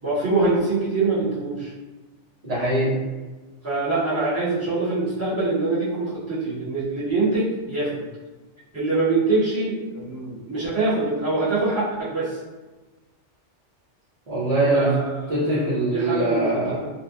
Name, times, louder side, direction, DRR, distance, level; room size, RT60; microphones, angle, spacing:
voice 1, 0.0-1.7 3.6-8.0 8.7-12.4 14.7-16.5 16.8-16.9, right 3 dB, 15° right, -13 dB, 1.1 m, -24 dB
voice 2, 2.4-3.0 14.3-15.0 15.3-16.8, right 1 dB, 40° right, -9 dB, 0.6 m, -22 dB
2.7 x 2.1 x 2.4 m, 1.2 s
omnidirectional pair, 1.2 m